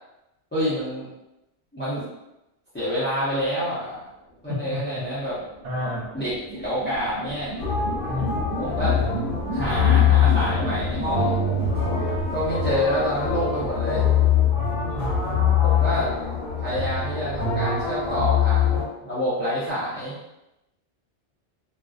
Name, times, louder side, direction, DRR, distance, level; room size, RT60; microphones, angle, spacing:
voice 1, 0.5-1.1 1.7-2.0 2.7-4.0 4.4-5.4 6.1-7.6 8.6-9.0 9.5-11.4 12.3-14.1 15.6-16.1 16.6-20.2, equal, 15° left, -11 dB, 0.4 m, -27 dB
voice 2, 4.5-5.0 5.6-6.1 8.1-8.4 14.8-15.1, left 1 dB, 90° right, -3 dB, 1.0 m, -30 dB
sound 1, 4.7-14.5, equal, 65° right, 0.8 m, -35 dB
sound 2, 7.6-18.8, left 7 dB, 55° left, 0.9 m, -23 dB
2.5 x 2.1 x 2.4 m, 0.92 s
omnidirectional pair, 1.2 m